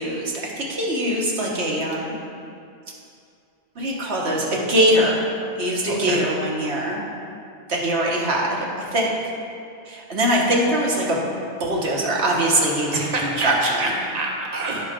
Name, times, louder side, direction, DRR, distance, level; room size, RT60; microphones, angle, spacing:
voice 1, 0.0-2.2 3.7-5.2 5.6-7.0 7.7-8.6 8.9-9.1 9.9-11.2 11.6-13.9, right 1 dB, 75° right, -3 dB, 1.5 m, -22 dB
voice 2, 5.9-6.2 12.9-14.8, right 2 dB, 40° right, -1 dB, 1.0 m, -27 dB
9.7 x 3.9 x 5.1 m, 2.5 s
omnidirectional pair, 1.1 m